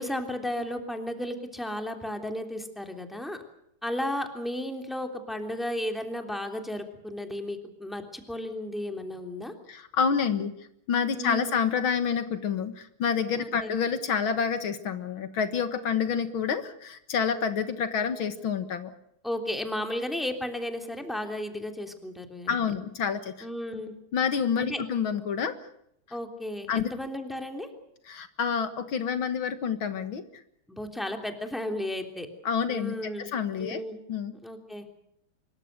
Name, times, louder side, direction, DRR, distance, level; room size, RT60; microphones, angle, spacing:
voice 1, 0.0-3.4 3.8-9.5 11.1-11.5 13.4-13.7 19.2-22.6 23.4-23.9 24.6-24.8 26.1-27.7 30.7-32.3 32.7-33.3 33.6-34.0 34.4-34.9, left 1 dB, ahead, 4 dB, 3.1 m, -34 dB
voice 2, 9.7-10.5 10.9-18.9 22.5-23.5 24.1-25.6 26.7-26.9 28.1-30.2 32.5-33.8 34.1-34.3, left 6 dB, 75° left, 10 dB, 2.3 m, -28 dB
25.0 x 22.5 x 6.7 m, 0.75 s
omnidirectional pair, 2.2 m